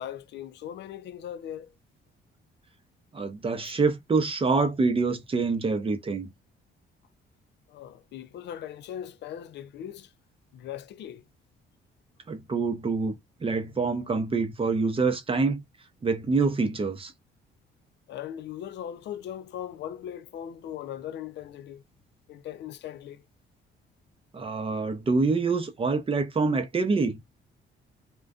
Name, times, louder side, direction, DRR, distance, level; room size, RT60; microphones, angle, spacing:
voice 1, 0.0-1.7 3.6-3.7 7.7-10.1 10.5-11.2 18.1-21.8 22.3-23.2, left 10 dB, 60° left, 0.4 m, -39 dB
voice 2, 3.1-6.3 12.3-13.2 13.4-15.6 16.0-17.1 24.3-27.2, right 4 dB, 25° right, 0.6 m, -26 dB
2.4 x 2.2 x 2.3 m
cardioid pair, 90°, 20 cm